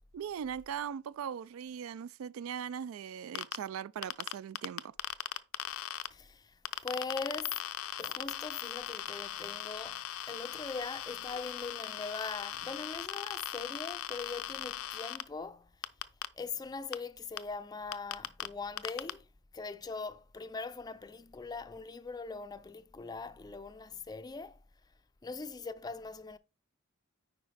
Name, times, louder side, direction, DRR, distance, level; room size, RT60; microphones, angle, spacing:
voice 1, 0.1-4.9, right 8 dB, 75° right, 0.3 m, -40 dB
sound 1, 3.4-3.6 4.0-6.1 6.7-15.2 15.8-16.3 16.9-17.0 17.4-17.5 17.9-18.5 18.8-19.1, left 11 dB, 75° left, 0.5 m, -38 dB
voice 2, 6.1-7.6 8.0-15.7 16.3-19.3 19.5-24.6 25.2-26.4, left 4 dB, 20° left, 0.4 m, -41 dB
9.4 x 4.9 x 3.3 m
head